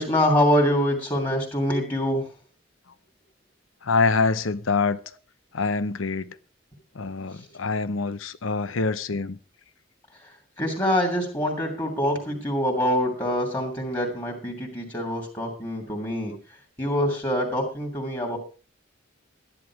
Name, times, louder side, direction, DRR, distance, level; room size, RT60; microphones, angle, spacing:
voice 1, 0.0-2.3 10.2-16.3 16.8-18.4, equal, 20° left, 0 dB, 2.8 m, -25 dB
voice 2, 3.8-5.0 5.5-6.4 6.9-9.4, left 4 dB, 80° left, 15 dB, 0.8 m, -25 dB
12.5 x 11.0 x 4.7 m, 0.34 s
head